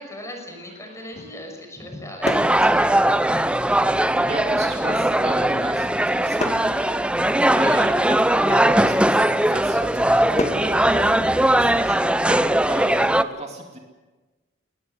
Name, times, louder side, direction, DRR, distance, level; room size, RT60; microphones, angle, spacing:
voice 1, 0.0-3.0 3.3-3.9 4.2-4.4 4.7-5.0, left 1 dB, 15° left, 3 dB, 6.0 m, -39 dB
sound 1, 0.6-3.0 3.6-3.7 4.1-11.9, left 2 dB, 35° left, 2.1 m, -36 dB
sound 2, 2.2-13.2, right 1 dB, 5° right, 0.7 m, -19 dB
voice 2, 4.3-7.0 7.5-11.2 11.5-13.8, right 2 dB, 35° right, 2 dB, 2.6 m, -34 dB
22.0 x 19.5 x 8.0 m, 1.2 s
head